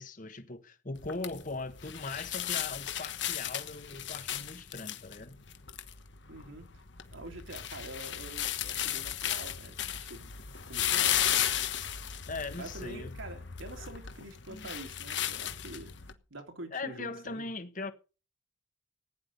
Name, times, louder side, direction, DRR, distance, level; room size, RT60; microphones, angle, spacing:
voice 1, 0.0-5.4 12.3-13.2 14.5-14.7 16.7-17.9, left 3 dB, 40° left, 1.3 m, -40 dB
sound 1, 1.0-16.1, left 10 dB, 65° left, 1.2 m, -35 dB
voice 2, 6.3-6.7 7.1-11.2 12.5-17.5, right 2 dB, 85° right, 3.0 m, -46 dB
15.5 x 9.9 x 5.3 m
head